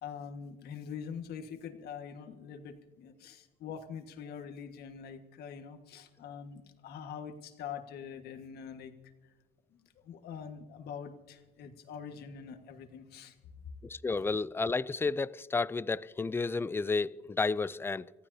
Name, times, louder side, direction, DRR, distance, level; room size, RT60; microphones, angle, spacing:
voice 1, 0.0-8.9 10.0-13.4, left 7 dB, 70° left, 1.6 m, -44 dB
voice 2, 13.8-18.1, left 4 dB, 15° left, 0.4 m, -31 dB
28.0 x 15.0 x 2.8 m
cardioid pair, 110°, 17 cm